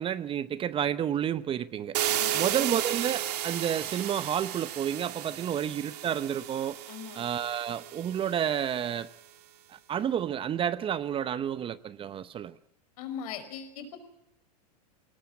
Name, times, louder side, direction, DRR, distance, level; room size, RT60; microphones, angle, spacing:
voice 1, 0.0-1.9 2.3-6.8 7.2-9.1 9.7-12.5, right 9 dB, 25° right, 15 dB, 0.8 m, -30 dB
sound 1, 1.9-8.8, right 12 dB, 70° right, 2.1 m, -34 dB
voice 2, 2.1-2.5 6.9-7.2 13.0-14.0, left 7 dB, 60° left, 8 dB, 5.4 m, -40 dB
21.5 x 18.0 x 8.7 m, 0.84 s
hypercardioid pair, 110°, 21 cm